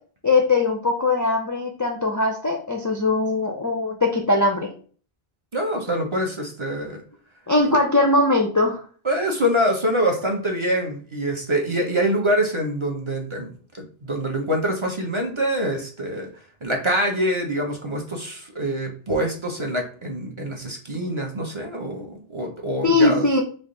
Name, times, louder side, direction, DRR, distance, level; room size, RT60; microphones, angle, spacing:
voice 1, 0.2-4.7 7.5-8.8 22.8-23.4, left 2 dB, 30° left, 2 dB, 0.4 m, -20 dB
voice 2, 5.5-7.0 7.6-7.8 9.0-16.3 16.6-23.3, equal, 35° right, 1 dB, 0.7 m, -25 dB
3.5 x 2.6 x 3.8 m, 0.42 s
omnidirectional pair, 1.0 m